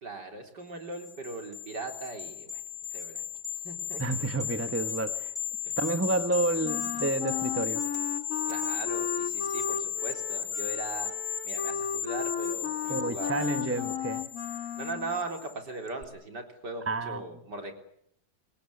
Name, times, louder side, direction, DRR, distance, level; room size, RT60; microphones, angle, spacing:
voice 1, 0.0-2.6 2.9-3.2 3.6-4.0 5.6-5.7 8.5-11.1 11.4-13.9 14.8-17.7, right 2 dB, 60° right, 4.4 m, -39 dB
sound 1, 0.9-15.5 15.9-16.0, left 9 dB, 20° left, 1.0 m, -35 dB
voice 2, 4.0-5.3 5.8-7.8 12.9-14.2 16.9-17.2, right 2 dB, 10° right, 0.8 m, -30 dB
Wind instrument woodwind instrument, 6.6-15.2, left 7 dB, 45° left, 1.8 m, -35 dB
26.5 x 19.5 x 8.2 m
omnidirectional pair, 2.1 m